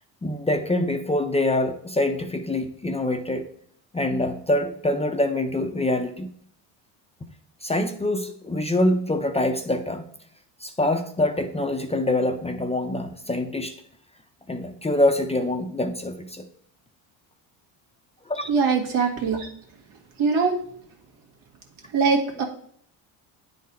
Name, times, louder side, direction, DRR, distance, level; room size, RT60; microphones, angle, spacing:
voice 1, 0.2-3.5 3.9-6.3 7.6-10.0 10.6-13.7 14.5-16.4 18.3-18.5, left 1 dB, 15° left, 6 dB, 0.5 m, -25 dB
voice 2, 18.5-19.5 20.2-20.6 21.9-22.4, right 5 dB, 80° right, 2 dB, 1.8 m, -22 dB
9.5 x 3.9 x 4.2 m, 0.63 s
cardioid pair, 110°, 48 cm